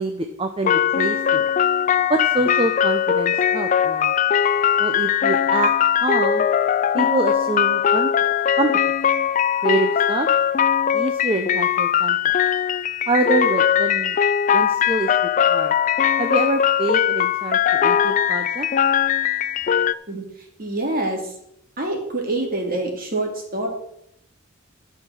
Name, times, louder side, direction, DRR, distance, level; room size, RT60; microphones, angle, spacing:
voice 1, 0.0-1.5 2.1-4.1 4.8-5.7 6.0-6.5 6.9-8.1 8.6-8.7 9.6-10.3 10.9-12.3 13.1-14.2 14.5-15.2 15.5-15.7 16.2-18.7, right 2 dB, 25° right, 6 dB, 0.7 m, -25 dB
sound 1, 0.6-19.9, left 9 dB, 35° left, 0.3 m, -20 dB
voice 2, 20.6-21.2 21.8-23.7, right 2 dB, 45° right, 1 dB, 2.7 m, -25 dB
12.0 x 5.8 x 6.4 m, 0.75 s
head